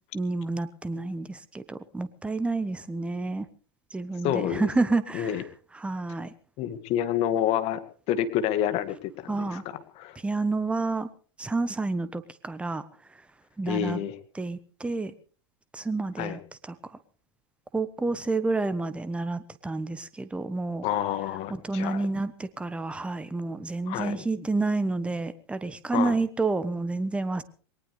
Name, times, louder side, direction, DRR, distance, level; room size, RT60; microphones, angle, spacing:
voice 1, 0.1-3.5 3.9-5.4 5.7-6.3 9.3-9.6 10.2-11.1 11.4-13.2 13.6-14.1 14.3-15.1 15.7-17.0 17.7-20.8 21.5-27.4, right 3 dB, 10° right, 13 dB, 1.1 m, -29 dB
voice 2, 4.2-4.7 5.1-5.4 6.6-7.8 8.1-9.6 10.0-10.2 13.7-14.1 16.2-16.4 20.8-22.0 23.9-24.1 25.9-26.1, left 10 dB, 45° left, 10 dB, 2.0 m, -28 dB
21.5 x 19.0 x 3.4 m, 0.40 s
hypercardioid pair, 100°, 14 cm